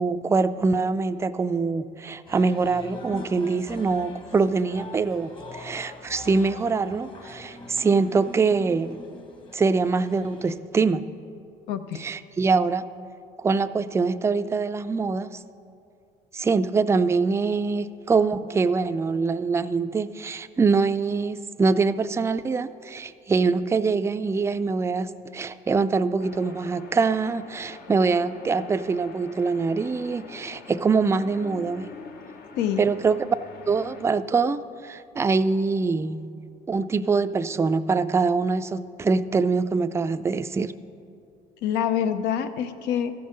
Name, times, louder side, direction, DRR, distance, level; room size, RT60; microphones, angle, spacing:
voice 1, 0.0-9.0 9.5-11.0 12.0-12.8 13.4-15.4 16.3-31.9 32.8-33.2 33.7-36.3 36.7-40.7, right 4 dB, 15° right, 12 dB, 0.3 m, -24 dB
sound 1, 2.3-10.5, left 2 dB, 30° left, 1.1 m, -43 dB
voice 2, 11.7-12.0 32.6-32.8 41.6-43.1, left 9 dB, 90° left, 10 dB, 0.6 m, -26 dB
sound 2, 26.2-34.0, left 5 dB, 65° left, 0.9 m, -45 dB
14.0 x 5.4 x 6.5 m, 2.5 s
cardioid pair, 110°, 17 cm